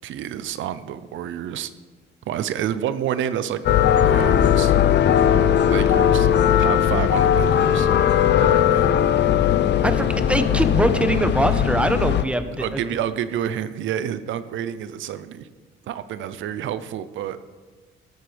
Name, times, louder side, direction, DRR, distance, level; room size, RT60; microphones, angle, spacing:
voice 1, 0.0-1.7 2.3-3.6 3.9-4.7 5.7-6.3 6.6-7.9 8.4-8.9 12.6-15.5 15.9-17.4, right 10 dB, 75° right, 13 dB, 0.6 m, -29 dB
sound 1, 3.7-12.2, left 9 dB, 60° left, 0.7 m, -18 dB
voice 2, 9.8-12.8, right 1 dB, 5° right, 9 dB, 0.9 m, -22 dB
13.0 x 13.0 x 3.4 m, 1.3 s
cardioid pair, 90°, 20 cm